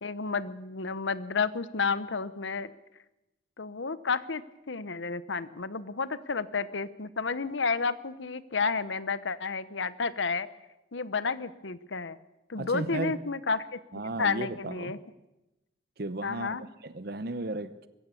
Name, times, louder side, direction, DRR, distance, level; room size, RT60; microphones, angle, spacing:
voice 1, 0.0-2.7 3.6-4.4 4.7-10.5 10.9-12.2 12.5-13.8 14.2-15.0 16.2-16.6, left 4 dB, 80° left, 15 dB, 1.0 m, -31 dB
voice 2, 12.6-13.3 13.9-15.0 16.0-17.9, right 2 dB, 55° right, 13 dB, 0.9 m, -35 dB
22.0 x 15.5 x 8.4 m, 0.98 s
head